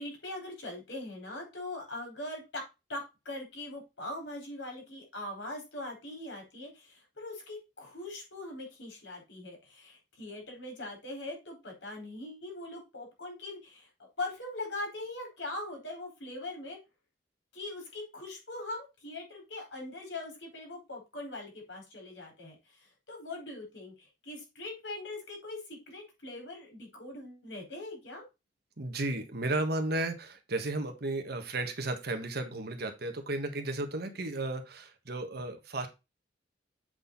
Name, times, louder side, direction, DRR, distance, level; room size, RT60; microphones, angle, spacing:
voice 1, 0.0-2.6 2.9-13.9 14.2-16.8 17.5-28.2 34.0-34.1, left 2 dB, 75° left, 2 dB, 4.3 m, -41 dB
voice 2, 28.8-35.9, right 2 dB, 60° right, 7 dB, 1.5 m, -34 dB
7.9 x 4.2 x 4.0 m, 0.25 s
head